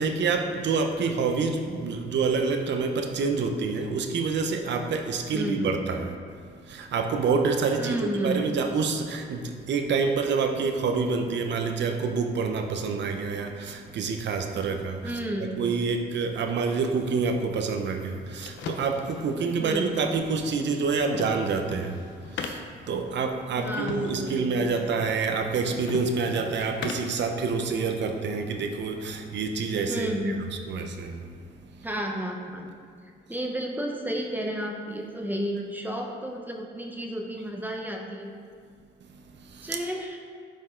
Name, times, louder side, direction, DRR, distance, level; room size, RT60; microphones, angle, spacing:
voice 1, 0.0-15.2 15.6-30.1 30.7-31.9 39.1-39.8, right 4 dB, 65° right, 5 dB, 0.9 m, -27 dB
voice 2, 5.3-5.7 7.8-8.6 15.0-15.7 19.6-20.0 23.6-25.0 29.9-30.5 31.8-32.7 33.0-38.3 39.6-40.2, equal, 10° right, 1 dB, 1.0 m, -32 dB
sound 1, 18.0-27.2, left 5 dB, 70° left, 0.8 m, -40 dB
10.0 x 5.4 x 3.8 m, 2.1 s
cardioid pair, 90°, 20 cm